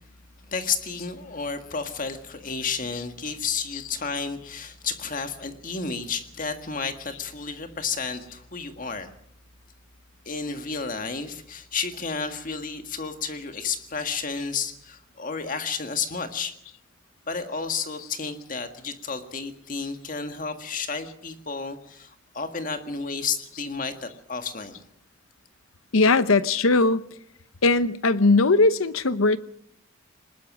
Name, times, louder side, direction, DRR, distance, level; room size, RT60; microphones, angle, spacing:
voice 1, 0.5-9.1 10.3-16.5 17.3-24.8, left 5 dB, 40° left, 1.8 m, -31 dB
voice 2, 25.9-27.0 27.6-29.4, left 3 dB, 85° left, 0.9 m, -19 dB
21.0 x 20.0 x 6.2 m
head